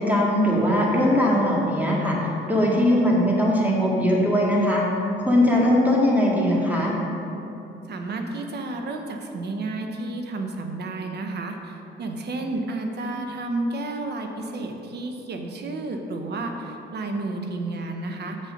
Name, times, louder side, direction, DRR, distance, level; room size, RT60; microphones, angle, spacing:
voice 1, 0.0-4.8 5.2-7.0, left 1 dB, 10° right, -4 dB, 2.0 m, -20 dB
voice 2, 7.9-18.5, right 2 dB, 55° right, 4 dB, 1.0 m, -31 dB
7.4 x 6.4 x 5.3 m, 2.9 s
cardioid pair, 90°, 20 cm